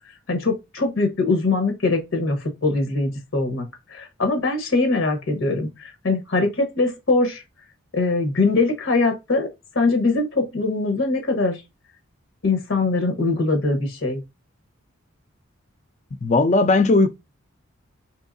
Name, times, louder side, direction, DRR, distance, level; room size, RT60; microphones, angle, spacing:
voice 1, 0.3-2.4 2.6-3.6 3.9-7.4 7.9-9.5 9.7-11.6 12.4-14.2, left 3 dB, 80° left, 1.2 m, -22 dB
voice 2, 16.2-17.1, left 3 dB, 35° left, 0.4 m, -17 dB
4.6 x 3.1 x 2.6 m
head